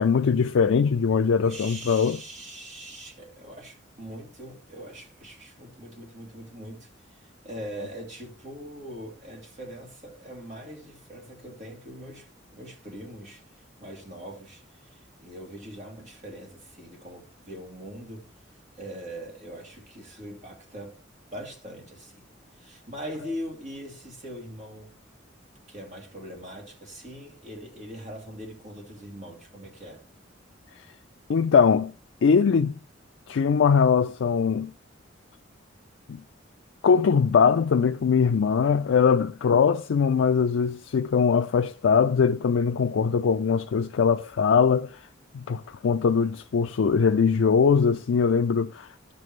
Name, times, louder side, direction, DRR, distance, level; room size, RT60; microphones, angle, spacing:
voice 1, 0.0-2.2 31.3-31.9 32.2-32.8 33.3-34.7 36.1-36.2 36.8-45.1 45.3-48.9, left 6 dB, 75° left, 0.4 m, -21 dB
voice 2, 1.4-20.9 21.3-22.2 22.5-24.9 25.7-30.1, equal, 40° right, 2.9 m, -42 dB
12.0 x 6.8 x 3.2 m
head